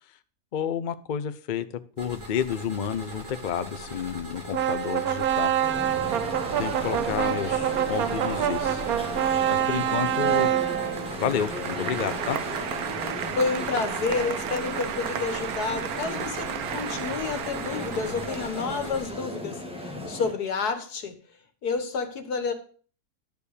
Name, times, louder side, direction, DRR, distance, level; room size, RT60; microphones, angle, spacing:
voice 1, 0.5-1.7 2.0-5.5 6.6-8.9 9.5-10.5 11.2-12.4, left 8 dB, 50° left, 0.6 m, -30 dB
sound 1, 2.0-19.1, equal, 55° right, 3.0 m, -41 dB
sound 2, 4.5-18.7, right 11 dB, 75° right, 1.2 m, -28 dB
sound 3, 5.6-20.3, left 1 dB, 5° right, 1.5 m, -36 dB
voice 2, 13.4-21.2 21.6-22.5, left 4 dB, 90° left, 1.9 m, -30 dB
12.0 x 4.6 x 6.9 m
omnidirectional pair, 1.6 m